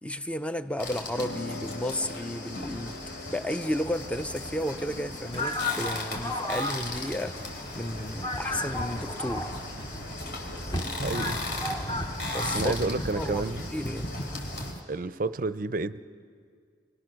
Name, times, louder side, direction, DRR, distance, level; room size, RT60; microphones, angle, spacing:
voice 1, 0.0-7.4 7.7-9.5 12.3-12.7 13.2-14.1, left 1 dB, 5° left, 0.5 m, -33 dB
sound 1, 0.8-14.7, left 2 dB, 55° left, 3.7 m, -38 dB
Piano, 1.2-11.1, left 2 dB, 80° left, 1.5 m, -46 dB
sound 2, 3.6-14.8, left 1 dB, 20° left, 0.8 m, -35 dB
voice 2, 11.0-11.4 12.5-13.6 14.9-16.1, right 3 dB, 45° right, 0.5 m, -30 dB
29.5 x 20.0 x 6.4 m
head